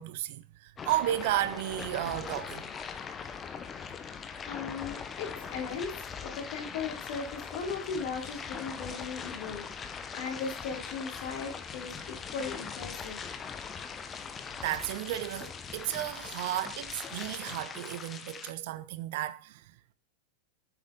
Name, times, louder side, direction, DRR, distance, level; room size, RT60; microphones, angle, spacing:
voice 1, 0.0-2.7 14.6-19.6, right 14 dB, 50° right, 0.7 m, -33 dB
sound 1, 0.8-18.5, left 6 dB, 20° left, 0.9 m, -41 dB
voice 2, 4.5-6.0 6.2-13.2, left 5 dB, 50° left, 3.4 m, -38 dB
8.1 x 7.3 x 5.2 m
figure-of-eight pair, 90°, 0 cm